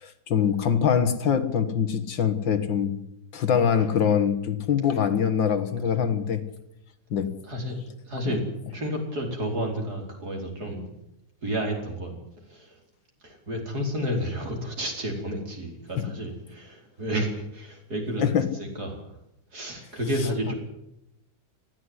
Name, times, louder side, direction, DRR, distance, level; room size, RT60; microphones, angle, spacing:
voice 1, 0.0-3.0 3.3-6.4 7.1-7.3 16.0-16.1 18.2-18.5 20.5-20.6, left 7 dB, 70° left, 10 dB, 2.2 m, -24 dB
voice 2, 7.4-7.8 8.1-8.5 8.7-10.9 11.4-12.2 12.5-12.8 13.2-18.2 18.5-19.1 19.5-20.5, equal, 50° right, 1 dB, 5.2 m, -31 dB
19.5 x 14.0 x 9.8 m, 0.83 s
omnidirectional pair, 2.1 m